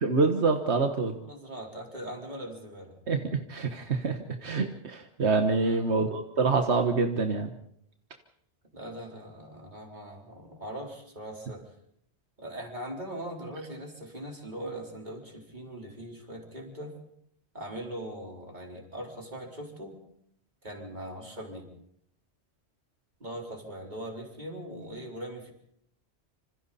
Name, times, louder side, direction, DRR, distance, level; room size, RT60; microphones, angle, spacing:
voice 1, 0.0-1.1 3.1-7.5, right 4 dB, 85° right, 5 dB, 1.7 m, -26 dB
voice 2, 1.2-3.0 5.5-6.1 8.7-11.6 12.4-17.0 17.5-20.0 20.6-21.7 23.2-25.5, right 1 dB, 45° right, 0 dB, 4.5 m, -40 dB
26.5 x 26.5 x 4.3 m, 0.72 s
omnidirectional pair, 1.1 m